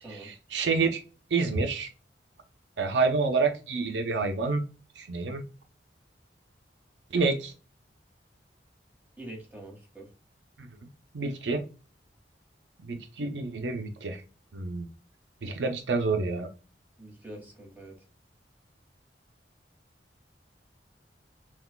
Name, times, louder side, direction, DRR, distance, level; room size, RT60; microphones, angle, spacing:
voice 1, 0.2-1.0 1.3-1.9 2.8-4.6 5.0-5.4 7.1-7.5 10.6-10.7 11.1-11.6 12.9-14.2 14.5-14.9 15.4-16.5, right 4 dB, 85° right, 6 dB, 0.6 m, -28 dB
voice 2, 9.2-10.1 17.0-18.0, right 1 dB, 10° right, -1 dB, 1.7 m, -44 dB
5.9 x 2.4 x 2.2 m, 0.34 s
head